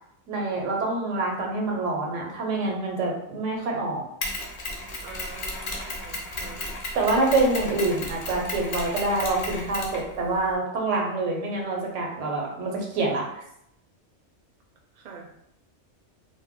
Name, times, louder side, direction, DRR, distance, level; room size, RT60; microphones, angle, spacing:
voice 1, 0.3-4.0 6.9-13.2, right 2 dB, 90° right, 0 dB, 1.1 m, -26 dB
Mechanisms, 4.2-10.5, left 1 dB, 50° left, 0.5 m, -34 dB
voice 2, 5.0-6.8 15.0-15.3, right 4 dB, 55° right, 0 dB, 0.5 m, -45 dB
2.4 x 2.1 x 3.5 m, 0.77 s
omnidirectional pair, 1.2 m